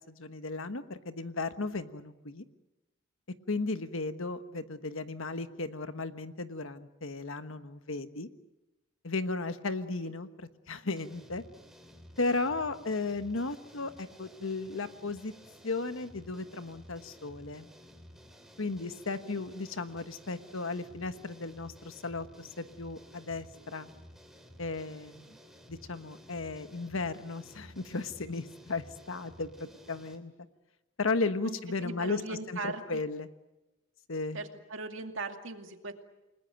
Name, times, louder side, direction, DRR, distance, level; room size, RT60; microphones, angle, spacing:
voice 1, 0.1-2.4 3.5-8.3 9.0-11.4 12.2-15.3 15.6-17.7 18.6-23.9 24.6-25.4 25.7-30.3 31.0-33.3 34.1-34.4, left 3 dB, 70° left, 10 dB, 1.3 m, -35 dB
sound 1, 11.0-30.2, equal, ahead, 2.5 m, -54 dB
voice 2, 31.8-33.0 34.3-35.9, right 3 dB, 65° right, 5 dB, 2.4 m, -39 dB
29.0 x 20.5 x 9.2 m, 1.0 s
head